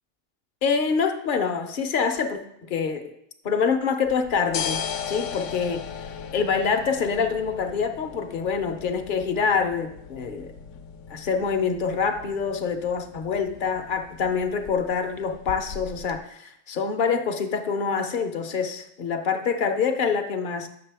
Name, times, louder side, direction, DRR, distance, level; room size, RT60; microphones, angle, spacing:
voice 1, 0.6-3.1 3.4-5.9 6.3-10.5 11.1-20.7, left 6 dB, 50° left, 6 dB, 0.7 m, -26 dB
sound 1, 4.1-16.2, left 7 dB, 75° left, 0.9 m, -38 dB
8.6 x 6.4 x 3.4 m, 0.76 s
omnidirectional pair, 1.3 m